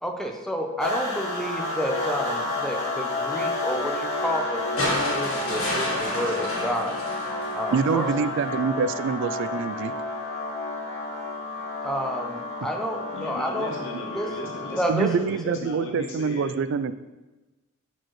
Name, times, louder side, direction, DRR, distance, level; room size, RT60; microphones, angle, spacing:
voice 1, 0.0-7.0 7.5-8.1 11.8-13.7 14.1-14.3 14.7-15.1, equal, ahead, 2 dB, 0.7 m, -30 dB
sound 1, 0.8-15.0, left 2 dB, 30° left, 1.9 m, -31 dB
sound 2, 4.8-8.1 9.4-9.5, left 1 dB, 75° left, 2.3 m, -30 dB
voice 2, 7.7-9.9 14.9-16.9, right 5 dB, 55° right, 14 dB, 0.3 m, -25 dB
voice 3, 13.1-16.5, left 1 dB, 55° left, 1 dB, 0.8 m, -37 dB
10.5 x 4.6 x 3.1 m, 1.1 s
head